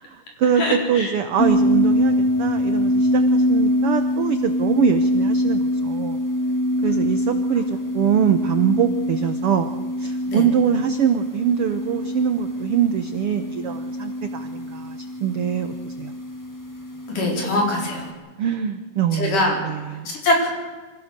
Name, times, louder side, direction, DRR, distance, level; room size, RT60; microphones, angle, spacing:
voice 1, 0.0-6.2 6.8-9.7 10.0-16.1 18.4-20.1, right 8 dB, 85° right, 8 dB, 1.2 m, -23 dB
voice 2, 0.5-1.2 10.3-10.6 17.1-18.1 19.1-19.6 19.9-20.5, left 1 dB, 65° left, -1 dB, 6.0 m, -23 dB
sound 1, 1.4-18.1, equal, 15° left, 0.7 m, -24 dB
26.0 x 15.5 x 6.7 m, 1.4 s
omnidirectional pair, 3.9 m